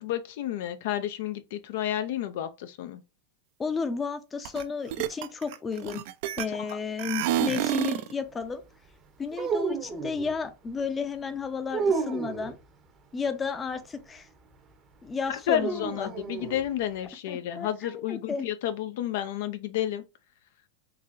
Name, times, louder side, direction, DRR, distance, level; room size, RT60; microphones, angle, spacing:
voice 1, 0.0-3.0 15.3-20.0, left 11 dB, 65° left, 0.4 m, -31 dB
voice 2, 3.6-6.0 6.4-8.6 9.2-12.6 13.1-14.3 15.0-16.1 17.3-18.5, left 5 dB, 20° left, 0.5 m, -32 dB
sound 1, 4.5-4.6 4.9-6.7 7.0-8.1, right 12 dB, 60° right, 0.4 m, -29 dB
sound 2, 9.3-10.4 11.7-12.5 15.6-16.6, right 5 dB, 30° right, 0.7 m, -30 dB
3.8 x 2.8 x 2.5 m
hypercardioid pair, 125°, 0 cm